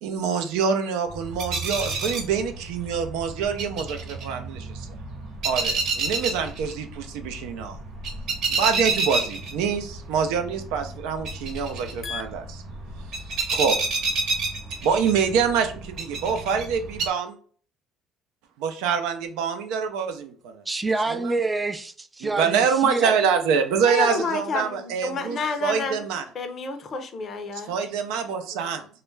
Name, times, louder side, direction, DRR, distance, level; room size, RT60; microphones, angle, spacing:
voice 1, 0.0-4.9 5.4-7.8 8.5-12.6 13.5-13.7 14.8-17.4 18.6-20.6 21.1-21.3 22.2-26.2 27.5-28.9, right 6 dB, 85° right, 0.4 m, -25 dB
sound 1, 1.1-17.1, right 3 dB, 65° right, 0.8 m, -30 dB
voice 2, 20.7-23.2, right 3 dB, 15° right, 0.3 m, -27 dB
voice 3, 23.9-26.0 26.3-27.7, left 4 dB, 45° left, 0.5 m, -29 dB
2.3 x 2.1 x 3.1 m
supercardioid pair, 90°, 0 cm